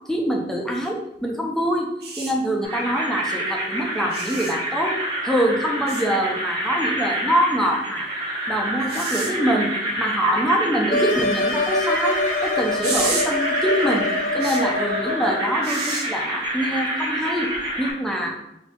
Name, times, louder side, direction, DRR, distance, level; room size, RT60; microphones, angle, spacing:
voice 1, 0.1-1.9 2.2-5.0 5.2-8.1 8.5-17.5 17.8-18.4, equal, 5° left, -1 dB, 0.5 m, -24 dB
sound 1, 2.0-2.3 4.1-4.5 5.9-6.0 8.9-9.3 12.8-13.3 14.4-14.6 15.6-16.0 17.5-17.7, right 3 dB, 60° right, 0.7 m, -29 dB
sound 2, 2.6-17.9, right 1 dB, 25° right, 0.9 m, -28 dB
sound 3, 10.9-15.4, left 2 dB, 50° left, 0.5 m, -25 dB
3.9 x 2.7 x 3.5 m, 0.86 s
head